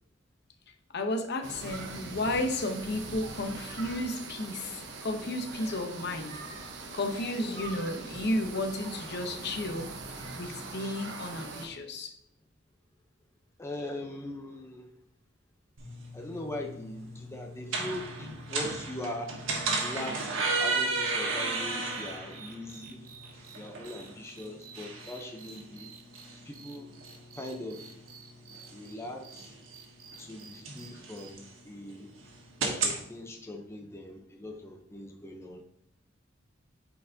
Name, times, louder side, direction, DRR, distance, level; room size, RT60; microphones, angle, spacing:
voice 1, 0.9-6.4 6.9-9.9 10.3-12.1, left 1 dB, 55° left, 6 dB, 0.8 m, -33 dB
sound 1, 1.4-11.7, right 3 dB, 65° right, 1.0 m, -42 dB
voice 2, 13.6-14.9 16.1-19.4 19.8-23.0 23.6-25.9 26.5-26.9 27.3-28.0 28.7-29.5 30.2-32.1 32.6-35.6, left 1 dB, 15° left, 3 dB, 0.6 m, -41 dB
sound 2, 15.8-33.0, right 3 dB, 85° right, 1.4 m, -35 dB
sound 3, 19.7-31.3, right 6 dB, 45° right, 0.7 m, -52 dB
8.5 x 4.6 x 2.7 m, 0.74 s
head